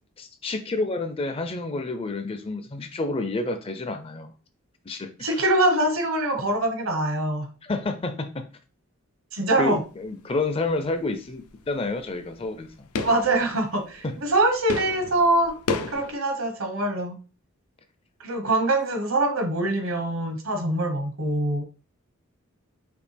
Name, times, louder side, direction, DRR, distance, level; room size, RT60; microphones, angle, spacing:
voice 1, 0.2-4.3 4.9-5.1 7.6-8.5 9.6-12.7 14.0-14.1, left 3 dB, 25° left, 8 dB, 0.4 m, -29 dB
voice 2, 5.2-7.5 9.3-9.8 13.0-15.6 15.9-17.2 18.2-21.6, right 2 dB, 70° right, 5 dB, 1.1 m, -24 dB
sound 1, 9.6-10.0 10.3-16.1, left 4 dB, 90° left, 0.6 m, -34 dB
5.1 x 2.8 x 3.3 m, 0.35 s
head